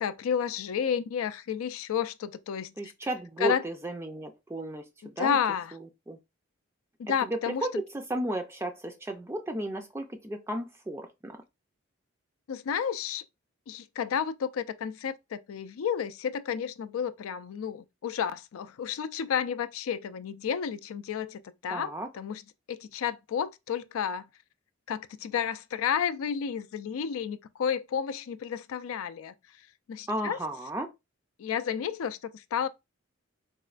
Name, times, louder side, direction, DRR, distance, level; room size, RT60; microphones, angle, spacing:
voice 1, 0.0-2.9 3.4-3.6 5.2-5.7 7.1-7.7 12.5-13.2 13.7-22.4 22.7-24.3 24.9-29.3 29.9-30.4 31.4-32.7, left 7 dB, 90° left, 0.4 m, -31 dB
voice 2, 2.8-5.4 5.7-6.2 7.2-11.4 21.7-22.1 30.1-30.9, right 1 dB, 10° right, 0.3 m, -34 dB
4.2 x 2.2 x 2.4 m
head